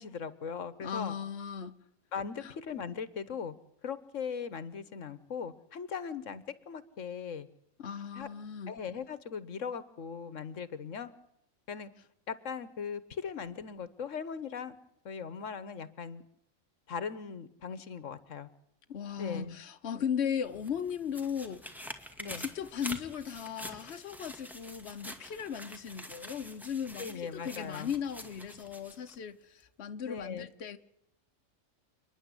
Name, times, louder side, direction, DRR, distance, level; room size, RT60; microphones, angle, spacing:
voice 1, 0.0-1.1 2.1-3.5 3.8-7.5 8.1-8.3 8.7-11.1 11.7-11.9 12.3-14.8 15.0-16.2 16.9-18.5 19.2-19.6 22.2-22.4 27.0-27.9 30.0-30.5, left 6 dB, 80° left, 1.5 m, -39 dB
voice 2, 0.8-1.8 2.4-2.5 7.8-8.7 18.9-21.6 22.4-30.8, left 8 dB, 60° left, 1.3 m, -37 dB
sound 1, 20.4-29.2 29.6-29.7, equal, ahead, 2.0 m, -46 dB
29.5 x 10.5 x 9.8 m
omnidirectional pair, 1.3 m